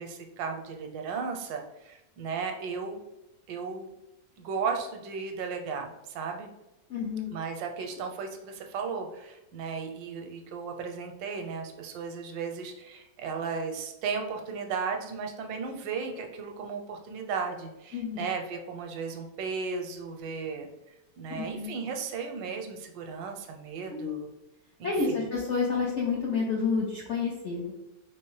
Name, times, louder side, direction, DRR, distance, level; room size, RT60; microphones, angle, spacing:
voice 1, 0.0-3.0 3.5-3.9 4.4-6.5 7.3-20.7 21.2-24.3 24.8-25.2, right 5 dB, 85° right, 4 dB, 1.3 m, -35 dB
voice 2, 6.9-7.3 17.9-18.3 21.3-21.7 23.9-24.2 24.8-27.7, left 4 dB, 70° left, -3 dB, 0.6 m, -29 dB
3.4 x 3.1 x 3.1 m, 0.94 s
omnidirectional pair, 2.0 m